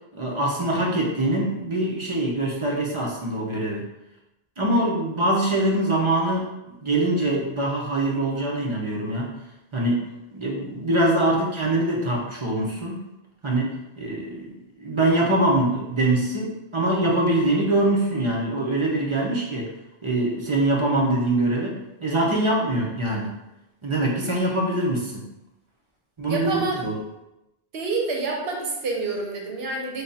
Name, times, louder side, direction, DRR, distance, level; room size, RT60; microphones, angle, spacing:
voice 1, 0.1-3.8 4.6-6.5 6.8-9.3 9.7-13.0 13.4-19.7 20.0-23.3 23.8-25.2 26.2-26.9, right 1 dB, 35° right, -3 dB, 0.6 m, -23 dB
voice 2, 26.3-26.8 27.7-30.0, right 3 dB, 75° right, 0 dB, 0.9 m, -28 dB
3.3 x 2.3 x 4.0 m, 0.93 s
omnidirectional pair, 1.1 m